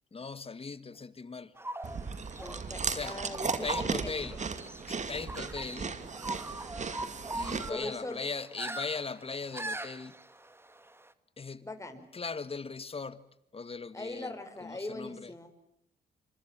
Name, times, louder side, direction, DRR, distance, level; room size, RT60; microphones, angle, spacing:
voice 1, 0.1-1.5 2.8-4.4 4.9-6.0 7.3-10.1 11.4-11.7 12.1-13.2 13.5-14.3 14.6-15.3, left 4 dB, 35° left, 1.9 m, -39 dB
sound 1, 1.6-11.1, right 1 dB, 15° right, 2.1 m, -42 dB
Chewing mastication, 1.8-7.7, right 5 dB, 45° right, 2.4 m, -36 dB
voice 2, 2.4-4.1 7.5-8.2 11.6-12.1 13.9-15.5, left 2 dB, 20° left, 5.4 m, -41 dB
25.5 x 25.0 x 7.5 m
cardioid pair, 65°, 17 cm